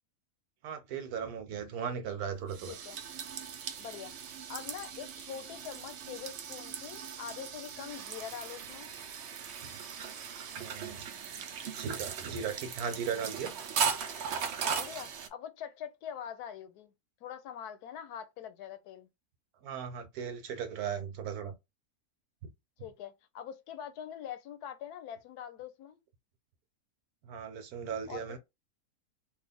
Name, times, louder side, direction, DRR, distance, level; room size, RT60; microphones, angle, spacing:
voice 1, 0.6-2.8 10.6-11.1 11.6-13.5 19.6-21.5 27.2-28.4, right 7 dB, 75° right, 1.2 m, -37 dB
sound 1, 2.3-15.3, right 7 dB, 60° right, 0.7 m, -38 dB
voice 2, 3.8-4.1 4.5-8.9 14.6-16.9 17.2-19.1 22.8-26.0 28.1-28.4, left 9 dB, 80° left, 1.1 m, -44 dB
3.3 x 2.4 x 3.5 m
omnidirectional pair, 1.6 m